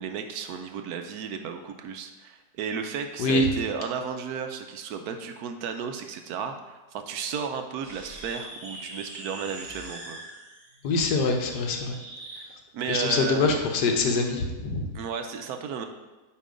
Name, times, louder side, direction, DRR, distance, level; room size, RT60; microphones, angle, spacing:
voice 1, 0.0-10.2 12.3-12.4 12.7-13.7 14.9-15.9, right 6 dB, 75° right, 6 dB, 1.1 m, -33 dB
voice 2, 3.2-3.5 10.8-11.9 12.9-14.9, left 3 dB, 90° left, 4 dB, 1.4 m, -24 dB
sound 1, 7.8-12.5, right 1 dB, 40° right, 1.5 m, -43 dB
8.6 x 3.0 x 4.9 m, 1.1 s
omnidirectional pair, 1.7 m